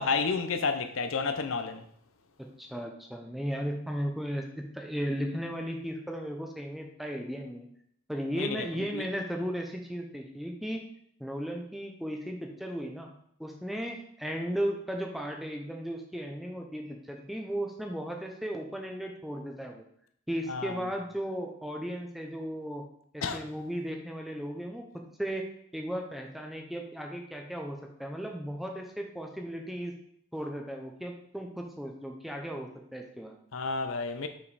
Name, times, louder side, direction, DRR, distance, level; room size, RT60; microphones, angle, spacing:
voice 1, 0.0-1.8 8.4-8.7 8.9-9.0 20.5-20.8 23.2-23.4 33.5-34.3, left 4 dB, 75° left, 0.7 m, -30 dB
voice 2, 2.4-7.7 8.1-10.8 11.2-13.1 13.4-19.8 20.3-22.8 23.1-24.8 25.2-29.9 30.3-33.4, equal, ahead, 0.6 m, -36 dB
5.8 x 5.1 x 4.1 m
head